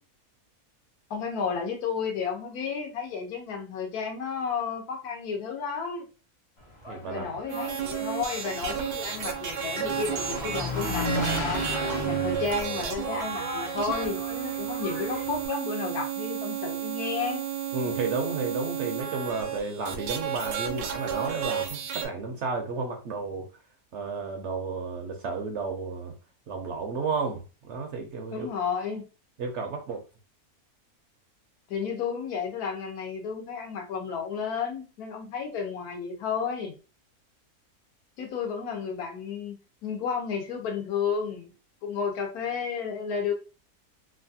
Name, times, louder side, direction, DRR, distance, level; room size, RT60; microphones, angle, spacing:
voice 1, 1.1-6.1 7.1-11.6 12.0-17.4 28.3-29.0 31.7-36.7 38.2-39.6 39.8-41.5 41.8-43.3, left 6 dB, 85° left, 3 dB, 1.3 m, -32 dB
Engine, 6.6-15.5, left 1 dB, 45° left, 0.4 m, -35 dB
voice 2, 6.9-7.3 17.7-23.5 23.9-26.1 26.5-28.5 29.4-30.0, right 4 dB, 65° right, 3 dB, 0.7 m, -32 dB
sound 1, 7.5-22.1, right 9 dB, 80° right, 1.1 m, -32 dB
3.1 x 2.4 x 2.6 m, 0.32 s
omnidirectional pair, 1.6 m